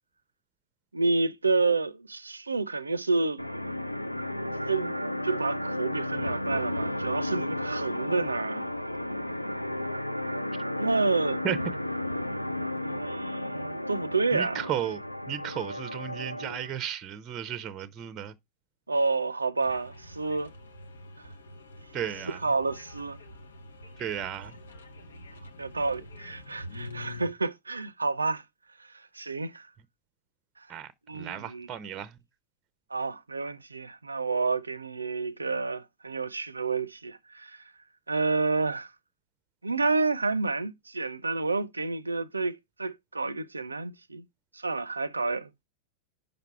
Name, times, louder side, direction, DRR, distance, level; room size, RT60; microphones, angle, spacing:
voice 1, 0.9-3.4 4.7-5.0 5.2-8.7 10.8-11.4 12.8-14.6 18.9-20.5 22.3-23.2 25.6-28.4 29.1-29.7 31.1-31.7 32.9-37.6 38.1-38.9 39.6-44.2 44.5-45.5, right 3 dB, 80° right, 0.4 m, -29 dB
sound 1, 3.4-16.7, left 1 dB, 90° left, 0.3 m, -33 dB
voice 2, 14.3-15.0 15.3-18.3 21.9-22.4 24.0-24.5 30.7-32.2, right 10 dB, 30° right, 0.5 m, -34 dB
sound 2, 19.6-27.3, left 2 dB, 70° left, 0.8 m, -46 dB
5.9 x 5.2 x 4.4 m
figure-of-eight pair, 90°, 0 cm